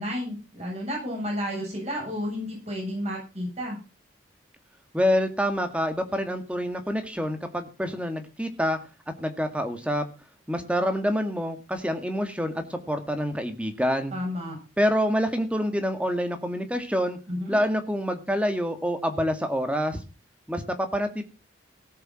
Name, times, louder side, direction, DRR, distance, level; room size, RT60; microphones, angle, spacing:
voice 1, 0.0-3.8 14.1-14.6 17.3-17.6, equal, 35° right, -1 dB, 7.4 m, -31 dB
voice 2, 4.9-8.8 9.2-10.0 10.5-14.1 14.8-17.2 17.5-20.0 20.5-21.2, equal, 5° right, 7 dB, 2.0 m, -27 dB
17.5 x 7.0 x 6.0 m, 0.31 s
head